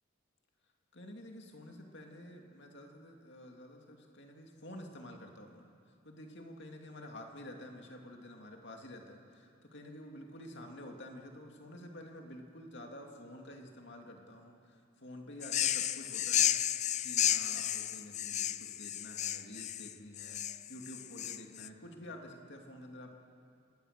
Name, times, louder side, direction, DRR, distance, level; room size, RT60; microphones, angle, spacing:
voice 1, 0.9-5.7 6.0-23.1, left 1 dB, 55° left, 2 dB, 2.6 m, -50 dB
sound 1, 15.4-21.7, left 11 dB, 35° left, 0.4 m, -32 dB
28.5 x 19.5 x 6.8 m, 2.5 s
head